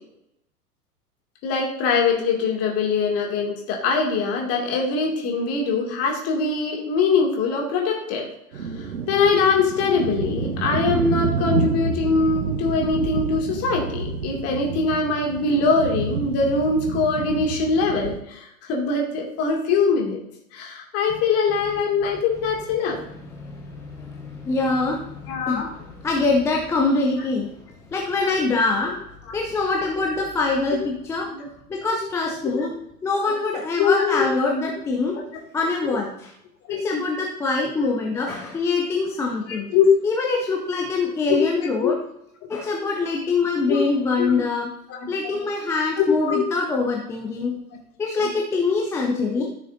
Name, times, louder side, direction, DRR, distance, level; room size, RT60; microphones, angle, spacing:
voice 1, 1.4-8.3 8.5-20.2 20.5-23.0 25.3-25.7 31.3-31.5 32.4-32.7 33.8-34.3 35.1-35.2 36.7-36.8 39.5-39.9 41.3-41.9 43.7-43.8 44.2-44.4 44.9-45.3 46.0-46.4 48.2-48.3, left 4 dB, 30° left, 0 dB, 2.4 m, -23 dB
sound 1, 8.5-18.2, right 4 dB, 70° right, 1.0 m, -28 dB
voice 2, 23.4-27.5 27.9-29.0 29.3-31.3 31.7-32.7 33.0-35.2 35.5-36.3 36.7-39.7 40.0-42.0 42.5-44.7 45.1-47.5 48.0-49.4, left 3 dB, 5° left, 0 dB, 0.5 m, -24 dB
14.0 x 6.4 x 2.7 m, 0.78 s
figure-of-eight pair, 100°, 47 cm